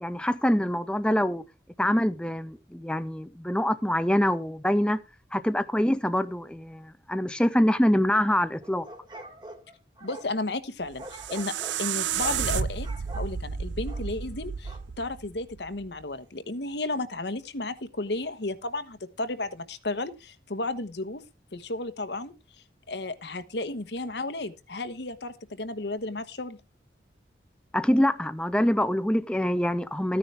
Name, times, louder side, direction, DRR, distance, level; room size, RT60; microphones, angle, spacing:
voice 1, 0.0-1.5 1.8-5.0 5.3-8.9 27.7-30.2, equal, 5° left, 0.5 m, -25 dB
sound 1, 8.6-10.3 11.0-11.8 12.2-12.5 12.8-13.3 13.9-14.1 14.6-14.8, right 1 dB, 25° right, 2.2 m, -44 dB
voice 2, 10.0-11.5 11.8-12.9 13.1-21.2 21.5-22.3 22.9-26.6, left 2 dB, 75° left, 1.2 m, -33 dB
sound 2, 10.8-15.9, right 7 dB, 90° right, 0.6 m, -32 dB
14.5 x 9.9 x 3.4 m
head